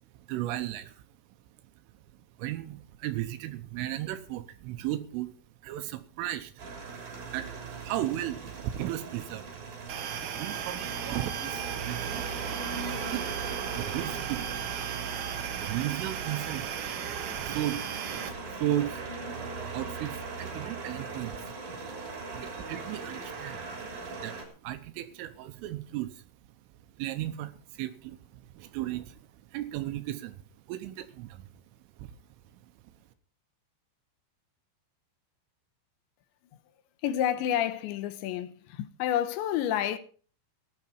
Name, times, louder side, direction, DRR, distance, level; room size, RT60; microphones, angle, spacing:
voice 1, 0.3-0.9 2.4-5.3 5.6-6.5 7.3-9.4 10.1-12.4 13.1-13.3 13.7-14.5 15.3-16.7 17.4-17.8 18.5-19.3 19.7-21.4 21.8-22.0 22.3-24.4 24.6-26.2 27.0-29.2 29.5-30.4 30.7-31.5 32.0-32.1, right 14 dB, 80° right, 3.5 m, -35 dB
sound 1, 6.6-24.4, right 4 dB, 40° right, 4.3 m, -39 dB
sound 2, 9.9-18.3, right 8 dB, 60° right, 2.3 m, -36 dB
voice 2, 37.0-40.0, left 11 dB, 75° left, 3.0 m, -29 dB
17.5 x 11.0 x 4.6 m
omnidirectional pair, 5.9 m